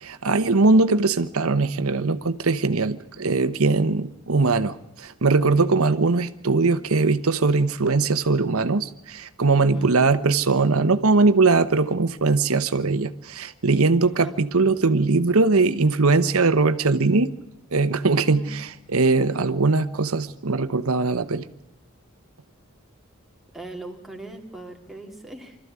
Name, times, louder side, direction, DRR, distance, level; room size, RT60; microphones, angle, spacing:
voice 1, 0.0-17.3 17.7-21.4, right 3 dB, 80° right, 12 dB, 1.0 m, -21 dB
voice 2, 9.5-9.9 14.0-14.3 18.2-18.5 23.5-25.6, right 1 dB, ahead, 0 dB, 2.7 m, -39 dB
25.0 x 14.0 x 9.6 m, 0.87 s
head